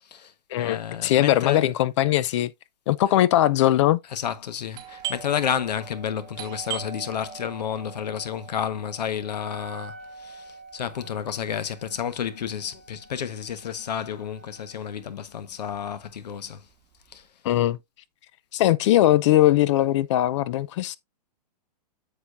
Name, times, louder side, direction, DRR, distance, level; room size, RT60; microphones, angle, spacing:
voice 1, 0.0-1.7 3.1-3.2 4.1-16.6 17.1-17.3, left 8 dB, 85° left, 1.3 m, -31 dB
voice 2, 0.5-2.5 2.9-4.0 17.4-17.8 18.5-21.0, left 14 dB, 45° left, 0.6 m, -20 dB
Doorbell, 4.7-14.1 14.3-14.4 15.1-15.4 15.7-17.1, right 11 dB, 20° right, 2.1 m, -41 dB
Wind instrument woodwind instrument, 9.2-15.0, right 2 dB, 5° left, 1.2 m, -48 dB
8.4 x 7.5 x 2.6 m
hypercardioid pair, 150°, 21 cm